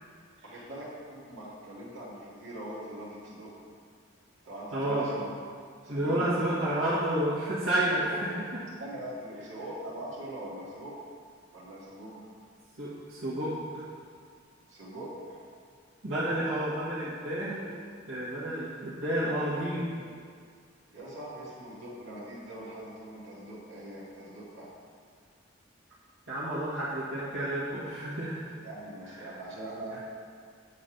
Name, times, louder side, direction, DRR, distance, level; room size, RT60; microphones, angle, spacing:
voice 1, 0.4-0.9 1.3-3.5 4.4-5.3 5.8-6.6 8.8-11.0 11.5-12.2 14.7-15.4 20.9-24.7 28.6-30.0, right 1 dB, 70° right, -7 dB, 2.1 m, -42 dB
voice 2, 4.7-5.1 5.9-8.4 12.8-13.8 16.0-17.7 18.1-19.9 26.3-28.5 29.2-29.4, right 1 dB, 90° right, -10 dB, 1.6 m, -30 dB
8.6 x 4.2 x 5.1 m, 2.1 s
head